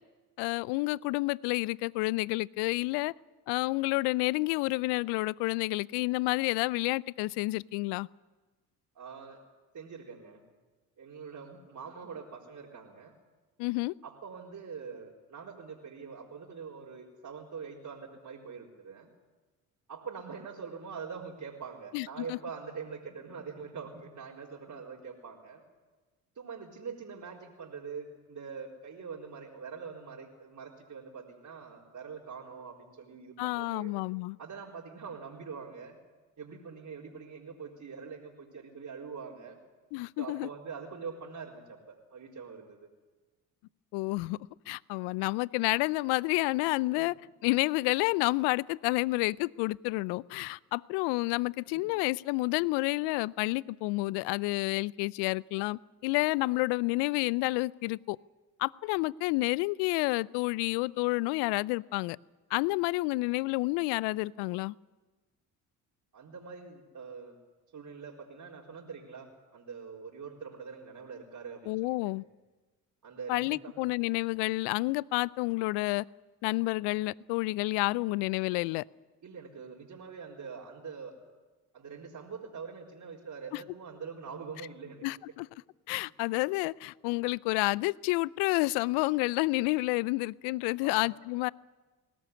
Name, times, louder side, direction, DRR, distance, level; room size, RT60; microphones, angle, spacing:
voice 1, 0.4-3.1 3.5-8.1 13.6-13.9 21.9-22.4 33.4-34.4 39.9-40.5 43.9-44.4 44.7-47.1 47.4-58.2 58.6-62.2 62.5-64.7 71.7-72.2 73.3-76.1 76.4-78.8 83.5-83.6 85.0-85.5 85.9-91.5, left 22 dB, 70° left, 23 dB, 0.6 m, -29 dB
voice 2, 8.9-9.4 9.7-10.4 11.0-13.1 14.0-19.1 19.9-25.6 26.3-33.9 34.4-36.0 36.4-39.6 40.2-42.9 47.0-47.1 51.7-51.9 66.1-67.4 67.7-71.7 72.0-72.1 73.0-73.8 79.2-81.1 81.7-85.1 90.8-91.1, right 5 dB, 45° right, -4 dB, 4.4 m, -44 dB
21.0 x 18.0 x 9.7 m, 1.3 s
hypercardioid pair, 55°, 42 cm